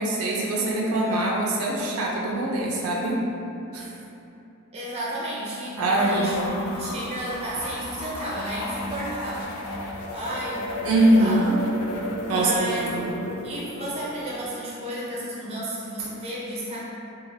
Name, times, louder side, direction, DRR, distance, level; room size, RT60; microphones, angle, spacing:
voice 1, 0.0-3.2 3.7-3.9 5.8-6.7 10.8-11.6 12.3-13.1, right 1 dB, 80° right, -3 dB, 0.4 m, -23 dB
voice 2, 4.7-11.4 12.3-12.9 13.4-16.8, right 1 dB, 30° right, -6 dB, 0.5 m, -32 dB
sound 1, 5.9-14.5, left 1 dB, 85° left, 0.4 m, -35 dB
3.1 x 2.5 x 2.5 m, 2.7 s
head